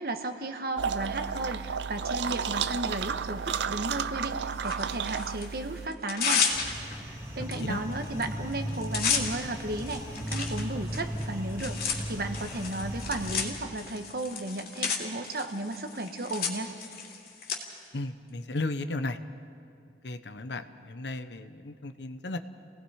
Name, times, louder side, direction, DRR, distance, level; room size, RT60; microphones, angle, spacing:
voice 1, 0.0-6.5 7.0-16.7, right 2 dB, 55° right, 7 dB, 1.2 m, -34 dB
sound 1, 0.8-5.9, right 6 dB, 70° right, 0.5 m, -32 dB
Tearing, 4.6-5.5 5.9-7.0 7.5-7.6 7.9-8.2 8.5-17.6, left 6 dB, 55° left, 2.9 m, -32 dB
sound 2, 6.5-13.4, equal, 15° right, 1.9 m, -37 dB
voice 2, 17.9-19.2 20.0-22.4, left 2 dB, 75° left, 10 dB, 0.9 m, -35 dB
29.5 x 19.0 x 4.8 m, 2.4 s
head